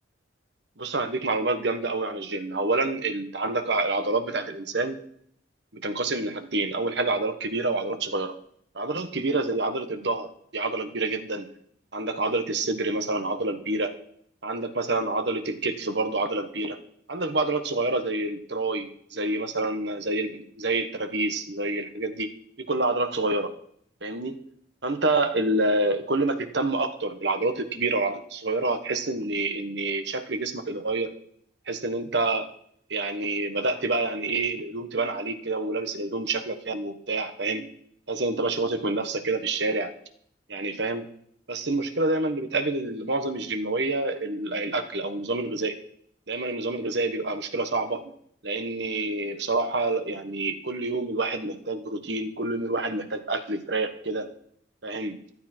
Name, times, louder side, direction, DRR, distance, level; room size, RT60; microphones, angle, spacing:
voice 1, 0.8-5.0 5.7-8.3 8.7-11.5 11.9-13.9 14.4-16.8 17.1-22.3 22.6-23.5 24.0-24.4 24.8-31.1 31.7-32.5 32.9-37.7 38.1-39.9 40.5-41.1 41.5-45.7 46.3-48.1 48.4-54.3 54.8-55.2, right 2 dB, 60° right, 9 dB, 1.4 m, -27 dB
14.5 x 12.5 x 4.5 m, 0.65 s
head